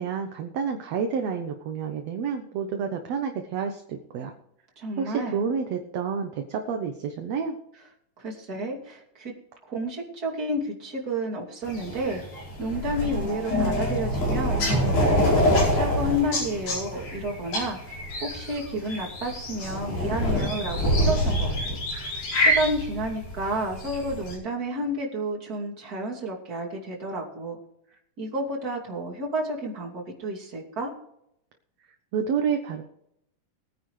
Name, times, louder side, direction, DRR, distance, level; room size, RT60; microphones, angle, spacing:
voice 1, 0.0-4.3 5.0-7.6 32.1-32.8, right 6 dB, 65° right, 5 dB, 1.8 m, -29 dB
voice 2, 4.8-5.4 8.2-9.3 9.7-21.8 22.4-27.6 28.2-30.9, right 1 dB, 30° right, -2 dB, 2.8 m, -31 dB
sound 1, 11.7-24.4, equal, 80° left, 6.6 m, -26 dB
21.0 x 9.8 x 3.2 m, 0.78 s
omnidirectional pair, 4.0 m